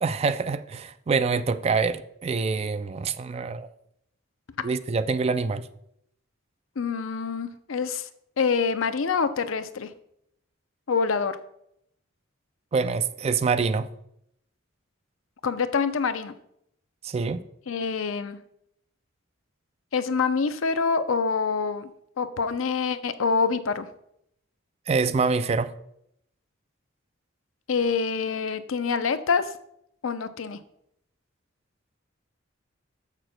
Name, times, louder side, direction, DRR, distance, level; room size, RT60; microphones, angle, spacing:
voice 1, 0.0-3.7 4.6-5.7 12.7-13.9 17.0-17.5 24.9-25.7, right 4 dB, 30° right, 0.3 m, -25 dB
voice 2, 6.8-8.1 8.4-9.9 10.9-11.4 15.4-16.3 17.7-18.4 19.9-21.9 22.2-23.9 27.7-29.5 30.0-30.6, left 5 dB, 85° left, 0.6 m, -26 dB
14.0 x 6.0 x 2.2 m
head